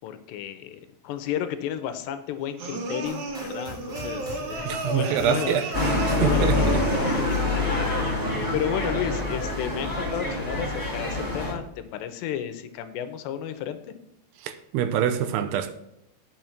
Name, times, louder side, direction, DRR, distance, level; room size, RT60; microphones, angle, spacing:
voice 1, 0.0-8.3 8.5-13.8, left 10 dB, 85° left, 2.9 m, -33 dB
sound 1, 2.6-7.5, right 1 dB, 55° right, 2.6 m, -33 dB
sound 2, 3.0-8.9, left 1 dB, ahead, 1.3 m, -43 dB
voice 2, 4.7-5.7 6.1-6.8 14.4-15.7, right 9 dB, 80° right, 2.6 m, -25 dB
sound 3, 5.7-11.5, left 2 dB, 20° right, 0.5 m, -26 dB
9.2 x 6.3 x 5.9 m
omnidirectional pair, 5.0 m